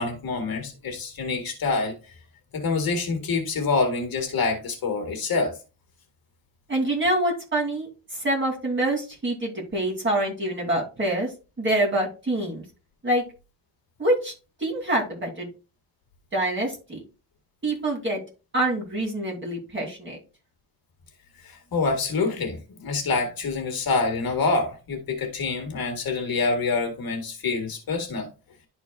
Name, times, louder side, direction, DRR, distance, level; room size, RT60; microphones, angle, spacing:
voice 1, 0.0-1.9 2.5-5.6 21.4-28.3, left 4 dB, 50° left, 1.8 m, -26 dB
voice 2, 6.7-11.3 11.6-12.6 13.0-13.2 14.0-14.3 14.6-15.5 16.3-17.0 17.6-18.2 18.5-20.2, right 1 dB, 25° right, 2.9 m, -26 dB
11.5 x 4.3 x 2.4 m
wide cardioid pair, 160°, 45 cm